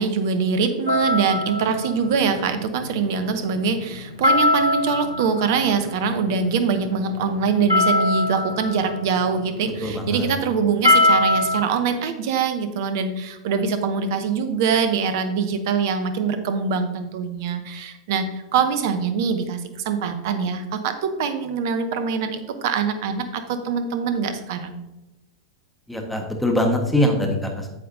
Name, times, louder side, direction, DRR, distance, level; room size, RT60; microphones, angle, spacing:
voice 1, 0.0-24.8, right 5 dB, 55° right, 9 dB, 0.8 m, -23 dB
sound 1, 0.9-11.6, left 1 dB, 90° right, 1.5 m, -24 dB
voice 2, 9.8-10.3 25.9-27.7, left 1 dB, ahead, 1 dB, 1.4 m, -22 dB
8.5 x 7.7 x 2.7 m, 0.99 s
figure-of-eight pair, 90°, 2 cm